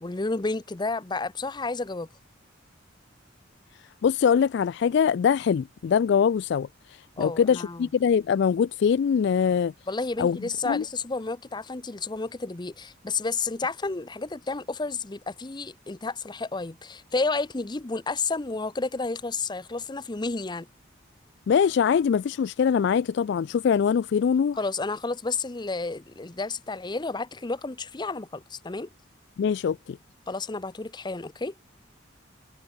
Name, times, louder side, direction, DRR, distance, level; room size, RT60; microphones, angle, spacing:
voice 1, 0.0-2.1 7.2-7.9 9.9-20.7 24.6-28.9 30.3-31.5, left 3 dB, 20° left, 0.7 m, -31 dB
voice 2, 4.0-9.7 10.2-10.4 10.7-10.8 21.5-24.6 29.4-30.0, left 7 dB, 60° left, 0.3 m, -23 dB
head